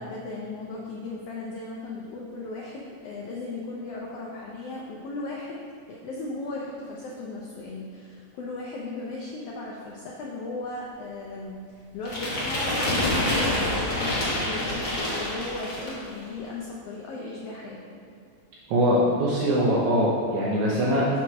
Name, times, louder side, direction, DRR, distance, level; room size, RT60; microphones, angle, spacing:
voice 1, 0.0-5.6 5.9-18.0, left 3 dB, 80° left, -3 dB, 1.3 m, -36 dB
sound 1, 12.0-16.1, left 1 dB, 35° left, 1.4 m, -27 dB
voice 2, 18.7-21.2, equal, 75° right, -5 dB, 2.1 m, -22 dB
5.7 x 4.7 x 6.1 m, 2.3 s
omnidirectional pair, 3.5 m